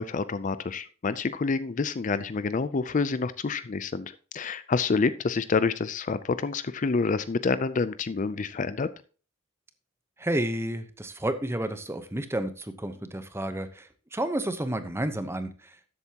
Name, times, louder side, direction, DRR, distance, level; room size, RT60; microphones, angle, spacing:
voice 1, 0.0-8.9, left 4 dB, 40° left, 15 dB, 0.4 m, -28 dB
voice 2, 10.2-15.5, right 1 dB, 10° right, 10 dB, 0.9 m, -31 dB
13.0 x 8.1 x 2.9 m, 0.37 s
head